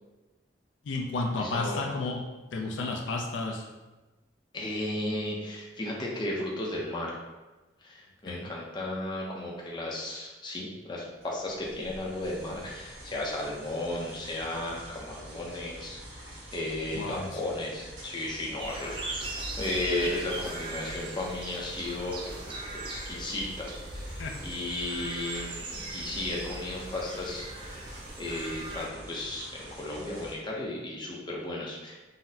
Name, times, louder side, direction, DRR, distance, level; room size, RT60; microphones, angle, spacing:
voice 1, 0.8-2.2 2.5-3.6 8.3-8.5 16.9-17.3 24.2-24.3, left 3 dB, 75° left, 1 dB, 0.4 m, -32 dB
voice 2, 1.4-1.9 4.5-7.2 7.8-22.4 22.7-27.9 28.2-32.0, left 1 dB, 25° left, -3 dB, 0.5 m, -35 dB
sound 1, 11.2-30.3, equal, 80° right, 1.2 m, -46 dB
sound 2, 18.6-28.9, right 2 dB, 25° right, 0.3 m, -39 dB
3.9 x 2.0 x 2.7 m, 1.1 s
head